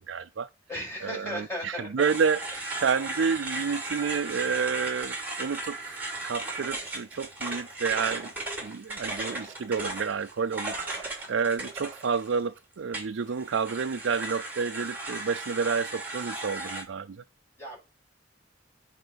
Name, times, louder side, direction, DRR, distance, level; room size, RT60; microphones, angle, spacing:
voice 1, 0.1-0.5 1.1-8.3 8.6-17.2, right 5 dB, 85° right, 0.5 m, -30 dB
voice 2, 0.7-2.1 17.6-17.8, equal, 15° left, 6.2 m, -36 dB
sound 1, 2.0-12.5 12.9-16.8, right 2 dB, 10° right, 2.9 m, -36 dB
8.1 x 4.4 x 7.0 m
head